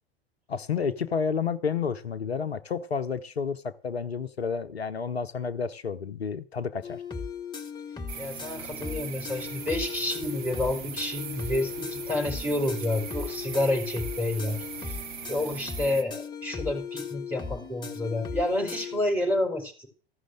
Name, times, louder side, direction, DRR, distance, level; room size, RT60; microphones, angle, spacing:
voice 1, 0.5-7.0, left 6 dB, 80° left, 0.7 m, -30 dB
sound 1, 6.8-19.0, left 6 dB, 15° left, 1.4 m, -38 dB
sound 2, 8.1-16.0, right 8 dB, 55° right, 1.1 m, -40 dB
voice 2, 8.2-15.0 15.3-19.9, left 1 dB, 5° right, 4.4 m, -29 dB
14.5 x 6.3 x 7.8 m
figure-of-eight pair, 90°, 31 cm